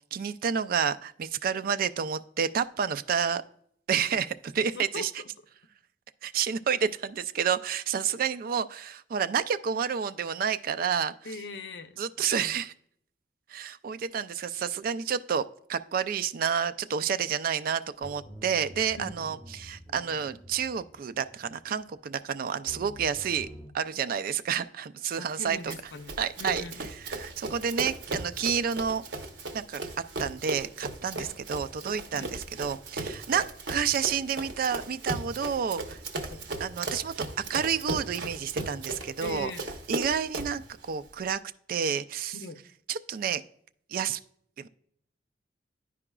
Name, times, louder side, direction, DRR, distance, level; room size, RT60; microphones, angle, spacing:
voice 1, 0.1-3.4 3.9-5.1 6.2-11.1 12.0-12.7 13.5-15.4 15.7-23.5 23.7-25.7 26.2-26.6 27.1-29.0 29.5-29.8 30.2-36.0 36.6-37.1 37.5-39.5 39.9-41.4 41.7-42.3 42.9-43.4 43.9-44.2 44.6-44.7, right 7 dB, 55° right, 0.3 m, -29 dB
voice 2, 4.6-5.3 11.2-12.6 18.9-19.3 25.2-26.8 31.2-31.3 32.1-32.3 36.3-36.4 39.2-39.7 42.3-42.6, left 3 dB, 70° left, 0.6 m, -41 dB
sound 1, 18.0-23.7, equal, 5° right, 0.9 m, -48 dB
Run, 25.7-40.6, right 2 dB, 70° right, 0.9 m, -37 dB
11.0 x 4.8 x 2.3 m
head